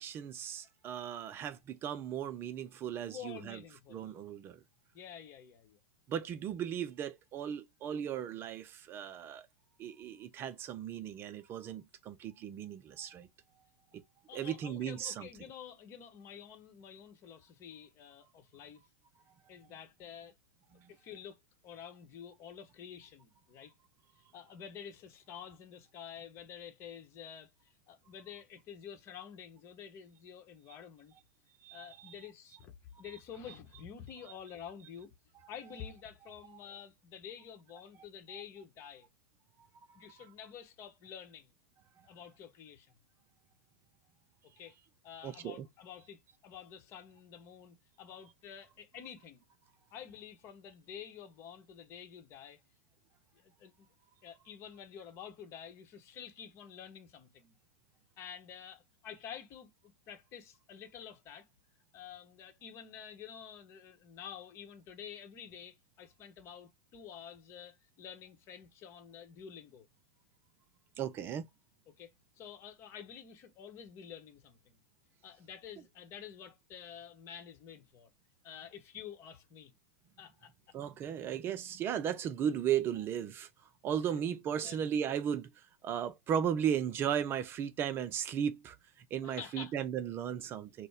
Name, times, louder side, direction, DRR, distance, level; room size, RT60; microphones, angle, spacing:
voice 1, 0.0-3.6 3.9-4.6 6.1-9.5 9.8-13.3 13.9-14.0 14.3-15.3 20.7-20.9 31.6-32.2 42.0-42.1 45.2-45.7 71.0-71.4 80.7-90.9, right 9 dB, 30° right, 0.4 m, -36 dB
voice 2, 3.0-4.2 4.9-5.8 14.3-18.8 19.5-20.3 20.9-23.7 24.3-31.1 31.7-35.1 35.5-39.1 39.9-41.5 42.0-42.9 44.6-44.8 45.0-49.4 49.9-52.6 53.3-53.9 54.2-57.6 58.2-61.5 61.9-69.9 71.9-74.8 75.2-78.1 78.4-79.7 80.2-80.8 84.0-84.1 84.6-84.8 89.2-89.8, left 8 dB, 35° left, 1.1 m, -49 dB
4.1 x 2.2 x 3.4 m
hypercardioid pair, 105°, 8 cm